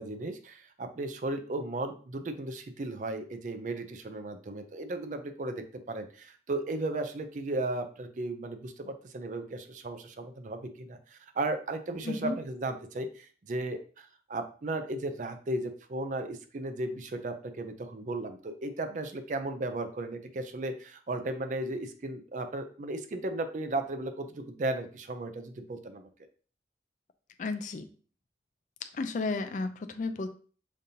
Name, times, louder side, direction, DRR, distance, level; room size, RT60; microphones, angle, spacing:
voice 1, 0.0-26.1, right 2 dB, 45° right, 8 dB, 0.4 m, -35 dB
voice 2, 12.0-12.4 27.4-27.9 28.9-30.3, left 3 dB, 45° left, 8 dB, 0.3 m, -33 dB
5.2 x 2.7 x 2.7 m, 0.41 s
head